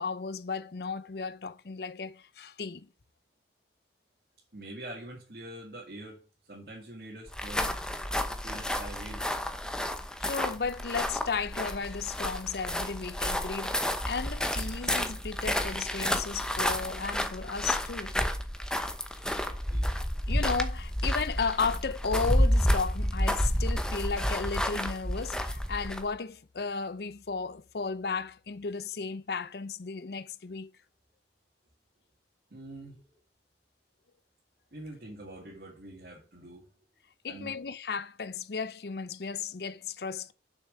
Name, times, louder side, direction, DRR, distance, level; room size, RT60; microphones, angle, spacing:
voice 1, 0.0-2.9 10.2-18.1 20.3-30.7 37.2-40.3, left 5 dB, 60° left, 0.6 m, -34 dB
voice 2, 4.5-6.2 6.5-7.8 8.3-9.3 19.3-19.9 32.5-33.0 34.7-36.7 37.3-37.5, right 1 dB, 55° right, 2.3 m, -45 dB
sound 1, 7.3-26.1, equal, 5° left, 0.9 m, -30 dB
7.1 x 6.3 x 6.6 m
head